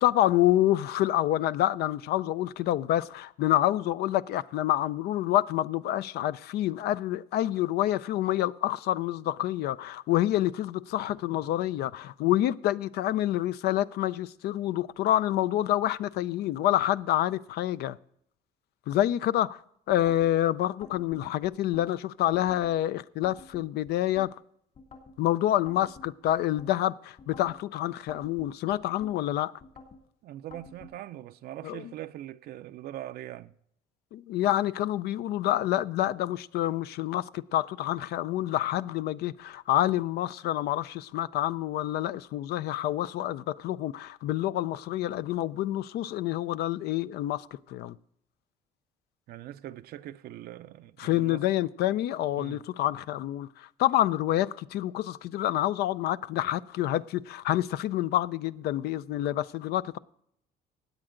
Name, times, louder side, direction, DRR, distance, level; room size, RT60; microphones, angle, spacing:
voice 1, 0.0-18.0 18.9-19.6 19.9-24.3 25.2-29.5 31.6-31.9 34.1-48.0 51.0-60.0, left 13 dB, 75° left, 0.5 m, -27 dB
sound 1, 19.9-20.3 20.8-21.9 22.3-22.7 23.2-24.3 24.7-25.2 25.7-26.7 27.2-27.6 28.1-29.1 29.6-30.0 30.5-30.9, left 3 dB, 50° left, 2.8 m, -49 dB
voice 2, 30.2-33.5 49.3-51.4 52.4-52.6, right 13 dB, 65° right, 0.5 m, -42 dB
16.0 x 8.9 x 3.8 m
cardioid pair, 110°, 17 cm